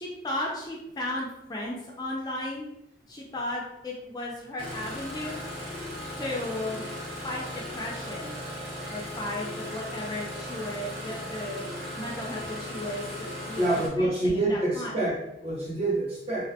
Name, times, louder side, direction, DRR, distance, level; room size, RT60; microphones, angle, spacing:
voice 1, 0.0-2.7 3.1-5.4 6.2-6.8 7.2-8.4 8.9-15.0, left 1 dB, 20° left, -3 dB, 0.3 m, -35 dB
Engine starting, 4.6-13.9, equal, 80° right, 1.2 m, -37 dB
voice 2, 13.6-16.5, right 2 dB, 35° right, -4 dB, 0.6 m, -27 dB
2.3 x 2.1 x 2.7 m, 0.84 s
head